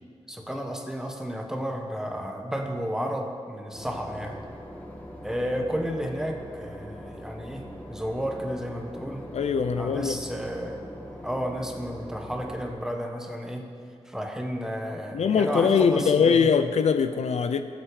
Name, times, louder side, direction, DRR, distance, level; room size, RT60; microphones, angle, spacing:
voice 1, 0.3-4.4 5.2-7.6 7.9-9.2 9.8-10.8 11.2-13.6 14.0-16.5, equal, 5° right, 2 dB, 1.2 m, -32 dB
Boat Water vehicle / Engine, 3.7-12.7, equal, 15° left, 1.9 m, -42 dB
voice 2, 9.3-10.2 15.1-17.6, left 6 dB, 65° left, 9 dB, 0.6 m, -22 dB
21.5 x 7.8 x 4.9 m, 2.2 s
wide cardioid pair, 165°, 12 cm